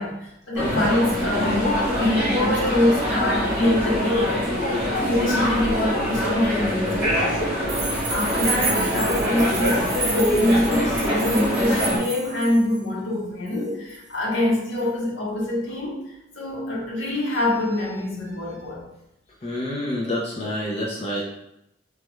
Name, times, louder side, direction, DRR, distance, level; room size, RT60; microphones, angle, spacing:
voice 1, 0.0-7.8 8.1-18.8, left 1 dB, 80° left, -3 dB, 0.9 m, -25 dB
sound 1, 0.6-12.0, equal, 10° right, 1.0 m, -24 dB
sound 2, 7.7-12.8 13.5-13.6 13.9-14.0 14.8-14.9, right 4 dB, 80° right, 0.8 m, -31 dB
voice 2, 19.4-21.2, left 1 dB, 35° left, -3 dB, 0.4 m, -28 dB
3.2 x 2.3 x 3.0 m, 0.83 s
head